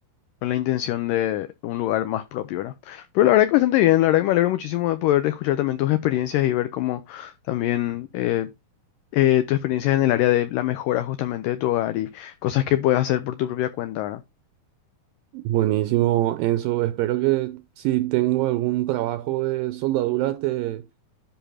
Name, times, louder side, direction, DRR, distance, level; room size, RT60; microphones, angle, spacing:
voice 1, 0.4-8.5 9.1-14.2, left 14 dB, 80° left, 2.0 m, -22 dB
voice 2, 15.3-20.8, right 16 dB, 80° right, 2.1 m, -23 dB
10.0 x 3.7 x 5.6 m
omnidirectional pair, 4.4 m